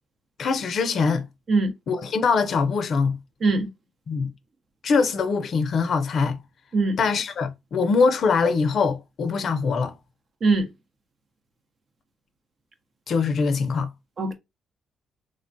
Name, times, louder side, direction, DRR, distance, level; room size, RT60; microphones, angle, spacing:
voice 1, 0.4-1.2 1.9-3.2 4.1-4.3 4.8-6.4 7.0-9.9 13.1-13.9, left 5 dB, 60° left, 0.5 m, -23 dB
voice 2, 1.5-1.7 3.4-3.7 6.7-7.0 10.4-10.7 14.2-14.3, right 3 dB, 45° right, 0.7 m, -21 dB
3.2 x 2.2 x 2.6 m
cardioid pair, 90°, 0 cm